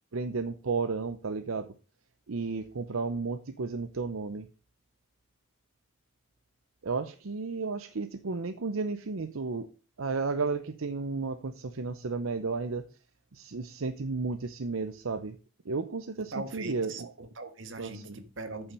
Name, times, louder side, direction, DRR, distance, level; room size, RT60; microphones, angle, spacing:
voice 1, 0.1-1.7 2.3-4.5 6.8-9.7 10.0-12.8 13.3-15.4 15.6-17.1 17.8-18.2, right 4 dB, 85° right, 0.7 m, -33 dB
voice 2, 16.3-18.7, right 2 dB, 70° right, 1.6 m, -40 dB
8.8 x 7.2 x 5.4 m
head